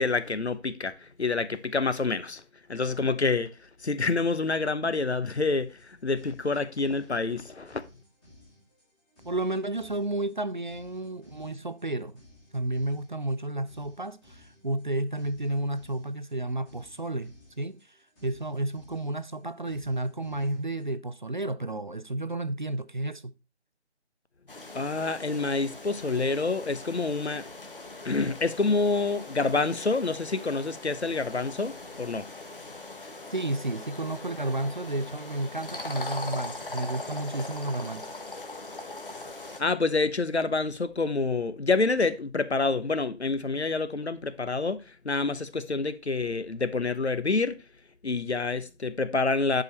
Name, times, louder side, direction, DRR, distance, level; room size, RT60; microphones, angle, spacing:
voice 1, 0.0-2.4 2.7-3.5 3.8-7.8 24.7-27.5 28.0-32.3 39.6-47.6 48.0-49.6, left 3 dB, 70° left, 1.1 m, -27 dB
sound 1, 5.5-20.9, left 1 dB, 10° left, 1.7 m, -58 dB
voice 2, 9.2-12.2 12.5-17.8 18.2-23.3 33.3-38.1, right 2 dB, 45° right, 0.5 m, -31 dB
sound 2, 24.5-39.6, left 2 dB, 50° left, 1.8 m, -41 dB
10.5 x 5.1 x 4.2 m
figure-of-eight pair, 160°, 34 cm